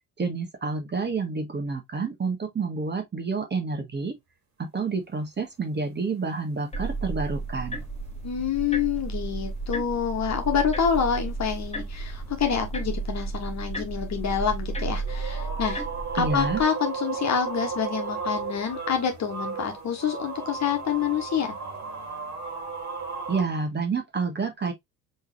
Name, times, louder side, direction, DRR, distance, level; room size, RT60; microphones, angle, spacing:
voice 1, 0.2-4.1 4.6-7.8 16.2-16.6 23.3-24.7, right 4 dB, 25° right, 1.4 m, -29 dB
sound 1, 6.3-6.6 6.9-7.0 7.3-23.4, right 5 dB, 40° right, 2.3 m, -36 dB
sound 2, 6.7-16.6, right 3 dB, 15° left, 1.5 m, -33 dB
voice 2, 8.2-15.8 16.1-21.5, left 7 dB, 35° left, 1.5 m, -27 dB
5.4 x 3.3 x 2.4 m
figure-of-eight pair, 55°, 45 cm